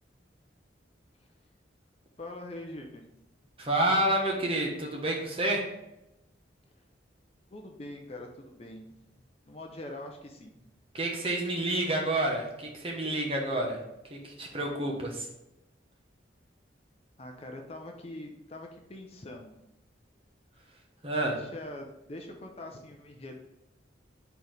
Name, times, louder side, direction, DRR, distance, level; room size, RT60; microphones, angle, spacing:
voice 1, 2.2-3.0 7.5-8.9 9.5-10.5 17.2-19.6 21.2-23.5, left 1 dB, 30° left, 3 dB, 0.6 m, -43 dB
voice 2, 3.6-5.7 10.9-13.8 14.1-15.3 21.0-21.4, right 1 dB, 30° right, -1 dB, 1.1 m, -29 dB
4.6 x 4.0 x 5.1 m, 0.89 s
head